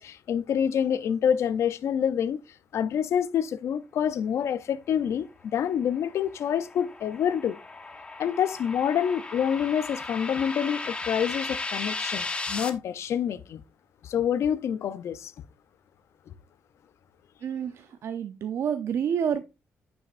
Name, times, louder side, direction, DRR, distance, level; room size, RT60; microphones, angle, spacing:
voice 1, 0.0-2.4 2.7-7.6 8.2-13.6 14.0-15.3, left 8 dB, 65° left, 0.5 m, -27 dB
sound 1, 5.9-12.7, left 3 dB, 20° left, 0.9 m, -36 dB
voice 2, 17.4-19.4, right 8 dB, 65° right, 0.6 m, -29 dB
9.4 x 5.6 x 2.5 m
cardioid pair, 105°, 5 cm